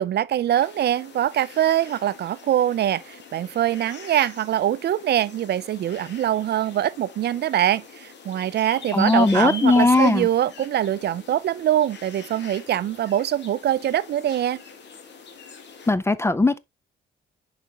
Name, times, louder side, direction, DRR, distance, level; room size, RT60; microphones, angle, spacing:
voice 1, 0.0-14.6, right 11 dB, 55° right, 0.5 m, -23 dB
sound 1, 0.5-15.9, left 5 dB, 60° left, 1.7 m, -43 dB
voice 2, 8.9-10.3 15.9-16.6, left 3 dB, 15° left, 0.4 m, -18 dB
7.0 x 4.8 x 2.9 m
cardioid pair, 90°, 20 cm